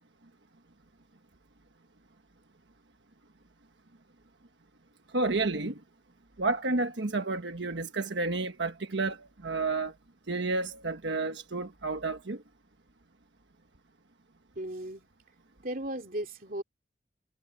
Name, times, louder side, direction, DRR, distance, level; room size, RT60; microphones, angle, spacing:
voice 1, 5.1-5.7 6.4-9.9 10.3-12.4, right 3 dB, 85° right, 1.3 m, -30 dB
voice 2, 14.5-15.1 15.6-16.6, right 1 dB, 50° right, 3.0 m, -36 dB
head